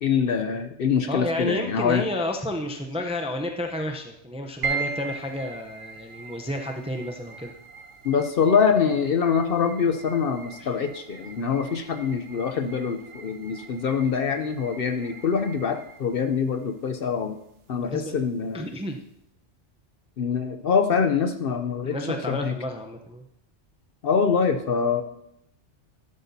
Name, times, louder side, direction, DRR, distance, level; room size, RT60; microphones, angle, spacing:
voice 1, 0.0-2.0 8.0-17.4 17.7-18.7 20.2-22.5 24.0-25.0, left 6 dB, 55° left, 7 dB, 0.8 m, -24 dB
voice 2, 1.1-7.5 10.6-10.7 17.8-18.2 18.5-19.0 21.8-23.2, left 1 dB, 5° right, 3 dB, 0.5 m, -31 dB
sound 1, 4.6-19.1, right 5 dB, 75° right, 1.3 m, -40 dB
12.5 x 8.1 x 2.7 m, 0.76 s
omnidirectional pair, 1.2 m